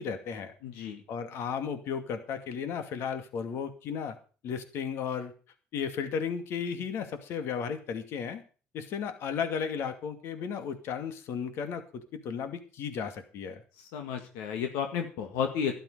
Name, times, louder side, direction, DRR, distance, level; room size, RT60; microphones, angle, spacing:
voice 1, 0.0-0.5 1.1-4.2 4.4-5.3 5.7-8.4 8.7-13.6, left 7 dB, 70° left, 8 dB, 2.4 m, -34 dB
voice 2, 0.6-1.0 13.9-15.8, left 7 dB, 90° left, 4 dB, 2.0 m, -32 dB
12.5 x 12.0 x 5.0 m, 0.37 s
supercardioid pair, 90°, 5 cm